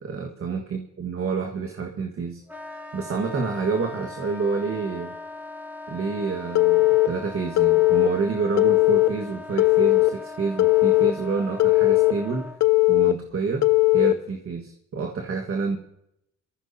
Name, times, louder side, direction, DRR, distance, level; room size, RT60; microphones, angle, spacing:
voice 1, 0.0-2.4 2.7-5.1 5.9-12.5 12.9-13.7 13.9-15.8, right 4 dB, 45° right, 2 dB, 1.7 m, -28 dB
Wind instrument woodwind instrument, 2.5-12.6, left 2 dB, 5° right, 2.1 m, -39 dB
Telephone, 6.5-7.1 7.6-8.1 8.6-9.1 9.6-10.1 10.6-11.1 11.6-12.1 12.6-13.1 13.6-14.1, left 21 dB, 65° left, 0.7 m, -18 dB
23.0 x 15.0 x 2.8 m, 0.80 s
cardioid pair, 90°, 30 cm